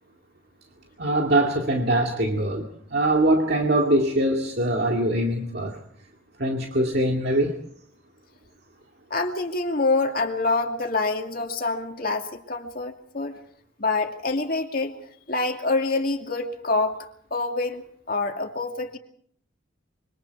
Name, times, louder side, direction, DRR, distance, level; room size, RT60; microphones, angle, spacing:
voice 1, 1.0-5.8 6.4-7.5, right 1 dB, 50° right, 2 dB, 2.3 m, -23 dB
voice 2, 9.1-13.4 13.8-14.9 15.3-17.0 17.3-19.0, left 3 dB, 45° left, 3 dB, 2.5 m, -26 dB
26.5 x 24.5 x 4.7 m, 0.63 s
head